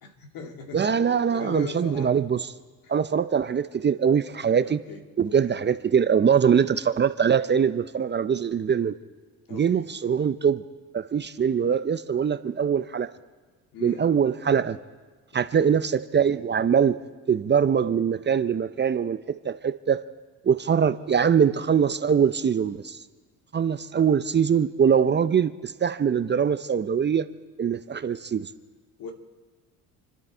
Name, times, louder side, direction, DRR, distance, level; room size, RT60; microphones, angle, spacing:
voice 1, 0.0-2.1 2.8-2.9 4.6-5.0 5.3-5.6 9.5-9.9 13.7-14.1 15.3-15.7 29.0-29.1, left 5 dB, 65° left, 2.3 m, -40 dB
voice 2, 0.7-2.5 2.9-4.8 5.2-9.0 9.5-10.6 10.9-13.1 13.8-14.8 15.3-17.0 17.3-20.0 20.4-23.0 23.5-27.3 27.6-28.5, right 7 dB, 30° right, 0.6 m, -23 dB
29.0 x 10.5 x 4.5 m
supercardioid pair, 85°, 38 cm